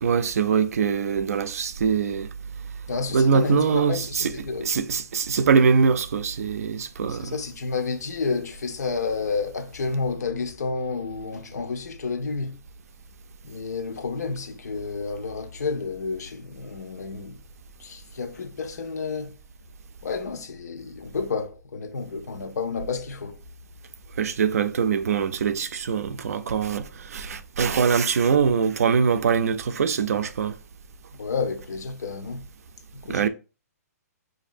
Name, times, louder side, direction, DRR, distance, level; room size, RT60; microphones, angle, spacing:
voice 1, 0.0-2.3 3.1-4.3 4.6-7.4 24.2-30.6 33.1-33.3, right 6 dB, 65° right, 0.4 m, -23 dB
voice 2, 2.9-4.8 7.1-12.6 13.4-17.4 17.8-19.4 20.0-23.4 31.1-32.4 33.0-33.3, left 4 dB, 80° left, 0.7 m, -30 dB
5.8 x 2.6 x 2.5 m
hypercardioid pair, 175°, 9 cm